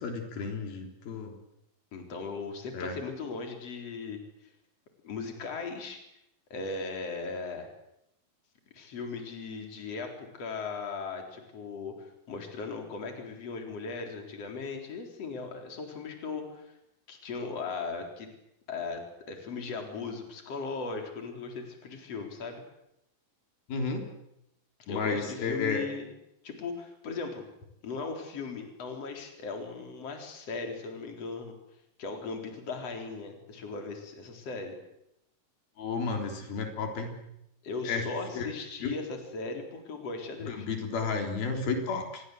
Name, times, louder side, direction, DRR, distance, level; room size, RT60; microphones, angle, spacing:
voice 1, 0.0-1.3 2.7-3.0 23.7-24.1 24.9-25.8 35.8-37.2 37.9-38.0 38.3-38.5 38.8-38.9 40.4-42.2, left 4 dB, 90° left, 3 dB, 5.4 m, -32 dB
voice 2, 1.9-4.2 5.0-6.0 6.5-7.7 8.7-16.7 17.1-18.3 18.7-22.6 24.8-26.1 26.4-27.4 27.8-31.6 32.0-34.7 37.6-40.7, left 4 dB, 45° left, 3 dB, 4.8 m, -38 dB
27.0 x 22.5 x 8.0 m, 0.82 s
omnidirectional pair, 4.2 m